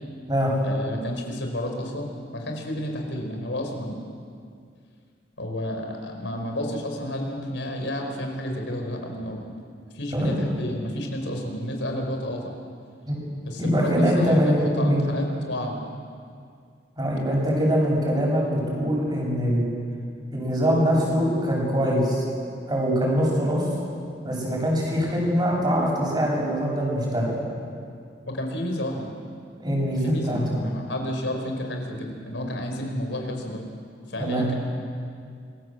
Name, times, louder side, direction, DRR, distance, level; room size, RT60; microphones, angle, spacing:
voice 1, 0.6-4.0 5.4-9.5 9.9-12.5 13.4-15.8 28.3-29.1 29.9-33.6 34.1-34.5, left 1 dB, 85° left, 3 dB, 4.7 m, -31 dB
voice 2, 13.6-15.0 17.0-19.7 20.3-22.2 22.7-23.7 24.2-27.3 29.6-30.6 34.2-34.5, equal, 25° right, -3 dB, 7.9 m, -23 dB
26.5 x 21.5 x 7.9 m, 2.3 s
head